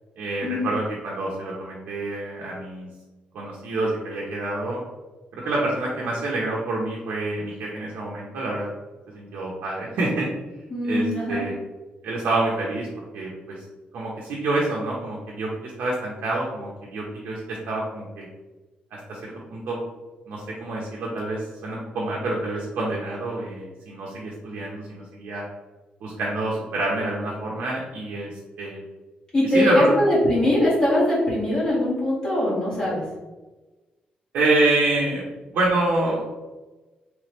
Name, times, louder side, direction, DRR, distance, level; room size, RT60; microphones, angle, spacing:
voice 1, 0.2-2.9 3.3-4.8 5.3-8.7 9.1-10.3 10.8-11.5 12.0-13.6 13.9-18.3 18.9-19.8 20.3-25.4 26.0-28.8 29.5-30.0 34.3-35.2 35.5-36.4, right 2 dB, 80° right, -3 dB, 0.8 m, -27 dB
voice 2, 10.7-11.4 29.3-33.0, left 1 dB, 20° left, -8 dB, 1.5 m, -21 dB
3.3 x 3.2 x 3.1 m, 1.2 s
wide cardioid pair, 175°, 3 cm